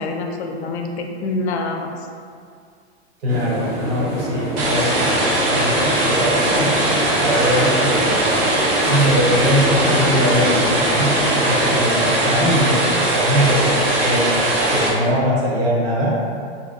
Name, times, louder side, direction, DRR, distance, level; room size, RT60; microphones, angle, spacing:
voice 1, 0.0-2.1, left 3 dB, 75° left, 3 dB, 0.5 m, -26 dB
voice 2, 3.2-6.8 7.2-8.1 8.8-16.2, equal, 60° right, -5 dB, 1.0 m, -21 dB
sound 1, 3.3-11.8, right 1 dB, 80° right, 1.4 m, -27 dB
sound 2, 4.6-14.9, right 1 dB, 25° right, 0.3 m, -19 dB
2.9 x 2.8 x 2.5 m, 2.2 s
hypercardioid pair, 125°, 35 cm